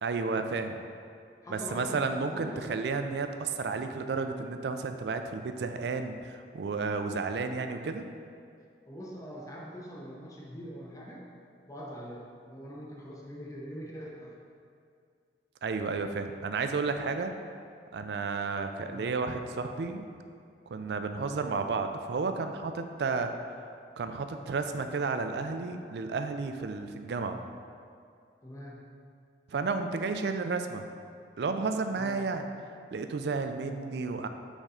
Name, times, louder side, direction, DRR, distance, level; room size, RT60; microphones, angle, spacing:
voice 1, 0.0-0.8 1.5-8.0 15.6-17.3 17.9-20.0 20.7-23.3 24.0-27.4 29.5-30.9 31.4-32.5 32.9-34.3, right 4 dB, 70° right, 7 dB, 0.4 m, -32 dB
voice 2, 1.4-2.7 8.9-11.2 11.7-14.3 18.9-19.2 28.4-28.9 32.0-32.2, equal, 20° left, -3 dB, 0.7 m, -43 dB
5.3 x 3.6 x 5.0 m, 2.3 s
head